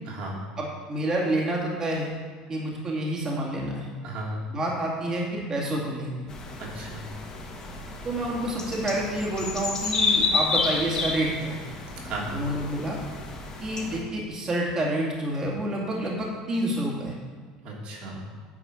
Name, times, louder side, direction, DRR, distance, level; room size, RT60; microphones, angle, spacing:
voice 1, 0.1-0.4 4.0-4.4 6.6-7.0 12.0-12.3 17.6-18.3, right 2 dB, 55° right, -3 dB, 3.1 m, -35 dB
voice 2, 0.6-2.1 2.5-3.9 4.5-6.3 8.0-11.6 12.3-13.0 13.6-17.2, right 1 dB, 30° right, -3 dB, 2.3 m, -28 dB
sound 1, 6.3-14.0, left 4 dB, 35° left, 2.0 m, -30 dB
9.7 x 4.9 x 7.8 m, 1.5 s
supercardioid pair, 115°, 2 cm